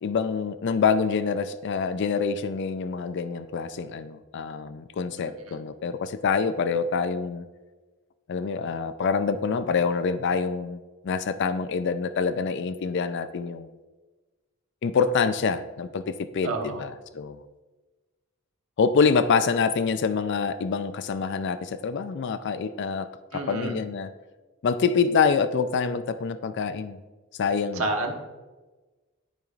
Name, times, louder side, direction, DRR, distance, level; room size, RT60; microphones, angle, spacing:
voice 1, 0.0-7.4 8.3-13.7 14.8-17.4 18.8-24.1 24.6-27.0 27.4-27.8, left 5 dB, 55° left, 12 dB, 0.3 m, -26 dB
voice 2, 16.4-16.8 23.3-23.8 27.7-28.1, right 2 dB, 75° right, 2 dB, 1.1 m, -29 dB
12.5 x 5.2 x 2.5 m, 1.2 s
head